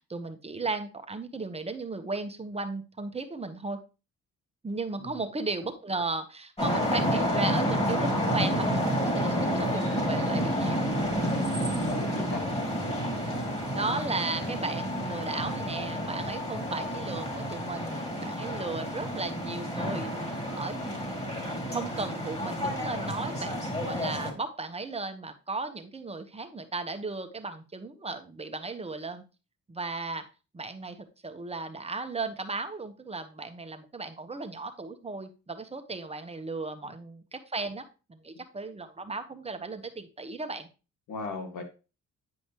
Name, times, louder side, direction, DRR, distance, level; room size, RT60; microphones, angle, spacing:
voice 1, 0.0-3.8 4.6-10.9 13.0-13.2 13.7-21.3 21.7-29.2 29.7-30.2 30.5-31.0 31.2-40.7, right 3 dB, 20° right, 7 dB, 1.0 m, -35 dB
sound 1, 6.6-24.3, equal, 20° left, 2.5 m, -30 dB
voice 2, 11.8-12.5 41.1-41.6, left 3 dB, 90° left, 4 dB, 1.9 m, -36 dB
9.6 x 5.2 x 3.0 m, 0.32 s
cardioid pair, 90°, 30 cm